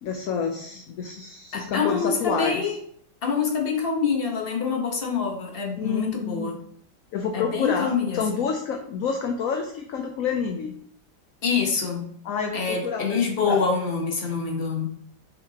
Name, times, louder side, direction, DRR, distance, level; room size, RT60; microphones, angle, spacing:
voice 1, 0.0-2.7 5.8-6.5 7.1-10.7 12.2-13.2 13.5-13.7, left 6 dB, 65° left, 4 dB, 0.9 m, -28 dB
voice 2, 1.5-2.7 3.2-6.6 7.3-8.2 11.4-12.1 12.5-14.9, left 5 dB, 35° left, 1 dB, 1.2 m, -26 dB
5.9 x 5.8 x 2.9 m, 0.65 s
omnidirectional pair, 1.9 m